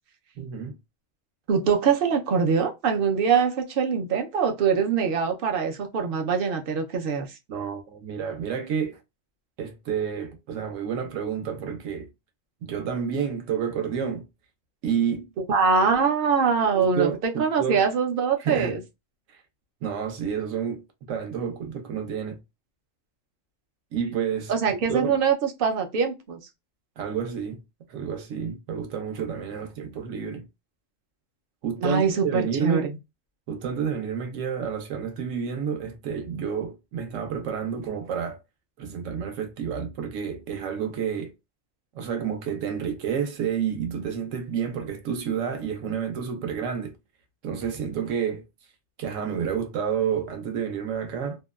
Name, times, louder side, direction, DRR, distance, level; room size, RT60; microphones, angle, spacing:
voice 1, 0.4-0.8 7.5-9.0 9.6-12.1 12.6-14.2 14.8-15.3 16.7-17.8 18.4-18.8 19.3-19.4 19.8-20.8 21.1-22.4 23.9-25.2 27.0-27.6 27.9-30.4 31.6-32.9 33.5-38.4 38.8-41.3 41.9-46.9 47.4-48.4 49.0-51.4, right 7 dB, 75° right, 1.0 m, -29 dB
voice 2, 1.5-7.3 15.4-18.8 24.5-26.4 31.8-32.9, right 6 dB, 60° right, 0.6 m, -23 dB
2.7 x 2.2 x 2.2 m
omnidirectional pair, 1.3 m